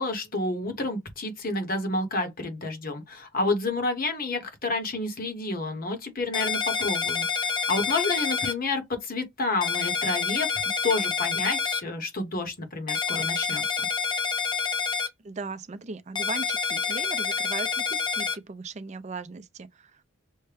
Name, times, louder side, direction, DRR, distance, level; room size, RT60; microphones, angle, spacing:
voice 1, 0.0-10.5 10.8-13.9, left 2 dB, 50° left, 1.2 m, -29 dB
sound 1, 6.3-8.5 9.6-11.8 12.9-15.1 16.1-18.4, left 5 dB, 20° left, 0.5 m, -28 dB
voice 2, 15.2-20.0, right 4 dB, 35° right, 0.5 m, -38 dB
6.3 x 2.2 x 3.3 m
head